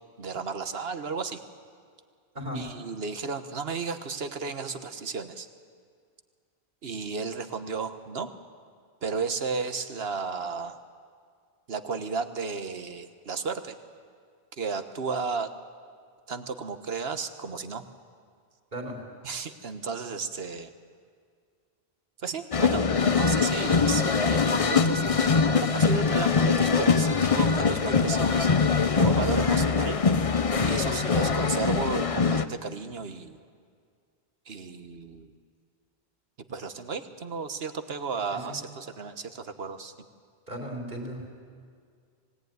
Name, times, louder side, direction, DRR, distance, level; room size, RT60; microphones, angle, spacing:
voice 1, 0.2-1.4 2.5-5.5 6.8-8.3 9.0-10.8 11.7-13.8 14.6-15.5 16.3-17.8 19.2-20.7 22.2-28.5 29.0-30.0 30.6-33.4 34.5-35.3 36.5-39.9, right 5 dB, 70° right, 9 dB, 1.4 m, -33 dB
voice 2, 2.3-2.7 18.7-19.0 38.3-38.6 40.5-41.4, equal, 45° right, -1 dB, 4.5 m, -36 dB
sound 1, 22.5-32.5, left 5 dB, 35° left, 0.8 m, -23 dB
26.0 x 17.5 x 9.5 m, 2.1 s
omnidirectional pair, 1.0 m